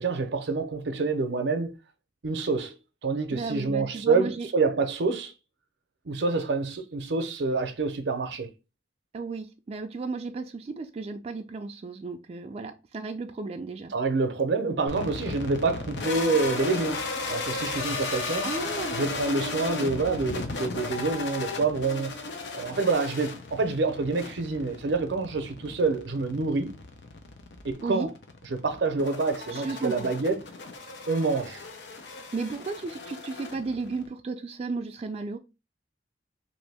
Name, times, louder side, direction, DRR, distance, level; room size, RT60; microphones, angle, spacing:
voice 1, 0.0-1.7 2.2-2.8 3.0-5.3 6.1-8.5 13.9-18.5 18.9-22.3 22.5-26.7 27.6-28.1 28.5-30.4 31.1-31.6, right 3 dB, 80° right, 0.6 m, -27 dB
voice 2, 3.3-4.5 9.1-13.9 18.4-19.0 27.8-28.1 29.5-30.1 32.3-35.4, right 3 dB, 35° right, 0.3 m, -34 dB
sound 1, 14.9-34.1, left 3 dB, 80° left, 0.6 m, -36 dB
2.9 x 2.7 x 3.3 m
head